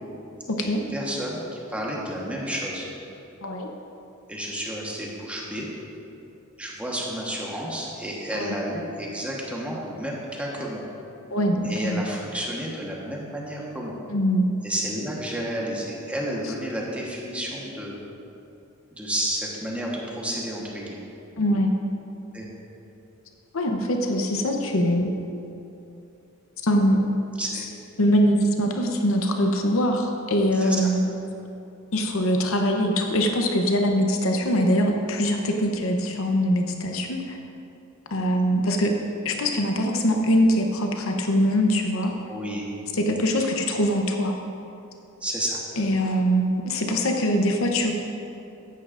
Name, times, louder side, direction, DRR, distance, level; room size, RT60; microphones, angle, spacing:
voice 1, 0.6-1.4 1.7-2.9 4.3-5.7 6.6-10.8 11.6-13.9 14.6-18.0 18.9-21.0 22.3-22.5 27.4-27.7 30.5-30.8 38.3-38.4 42.3-42.7 45.2-45.6, equal, 5° right, -4 dB, 1.2 m, -31 dB
voice 2, 11.3-12.1 14.1-14.5 21.4-21.7 23.5-25.1 26.6-27.0 27.5-27.7 28.0-31.0 31.9-37.4 38.1-38.9 39.2-42.1 42.9-44.3 45.8-47.9, equal, 70° left, 3 dB, 0.8 m, -23 dB
14.0 x 9.4 x 2.5 m, 2.8 s
head